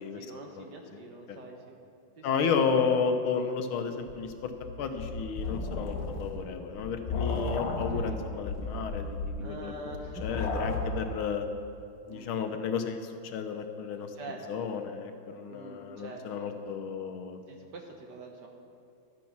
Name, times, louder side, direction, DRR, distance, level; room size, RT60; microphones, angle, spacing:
voice 1, 0.0-1.8 2.2-2.6 7.2-7.5 7.9-8.2 9.4-10.5 12.1-12.3 14.1-14.7 15.5-16.5 17.5-18.5, right 2 dB, 55° right, 2 dB, 1.7 m, -45 dB
voice 2, 2.2-4.5 4.8-9.7 10.2-11.4 12.1-13.0 13.3-14.1 14.5-17.4, left 6 dB, 75° left, 6 dB, 1.6 m, -32 dB
sound 1, 4.1-11.1, left 3 dB, 45° left, 0.9 m, -34 dB
13.0 x 9.3 x 5.9 m, 2.5 s
omnidirectional pair, 2.3 m